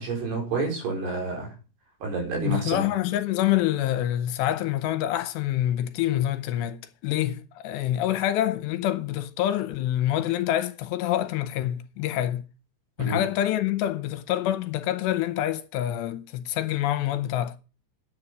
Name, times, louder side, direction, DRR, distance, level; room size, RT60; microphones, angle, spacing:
voice 1, 0.0-1.5 2.0-2.8 13.0-13.2, right 3 dB, 60° right, 6.6 m, -29 dB
voice 2, 2.4-12.4 13.0-17.6, left 12 dB, 80° left, 2.8 m, -26 dB
10.0 x 8.4 x 6.1 m
omnidirectional pair, 5.2 m